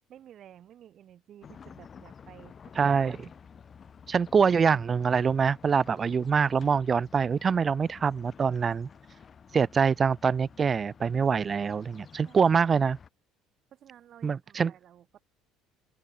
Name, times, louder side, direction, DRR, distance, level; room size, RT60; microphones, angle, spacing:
voice 1, 0.1-3.3 12.2-12.6 13.7-15.2, right 10 dB, 45° right, 7.0 m, -53 dB
sound 1, 1.4-13.1, left 7 dB, 30° left, 4.3 m, -51 dB
voice 2, 2.8-3.2 4.1-8.9 9.5-13.0 14.2-14.7, right 6 dB, 30° right, 0.3 m, -24 dB
open air
cardioid pair, 120°, 0 cm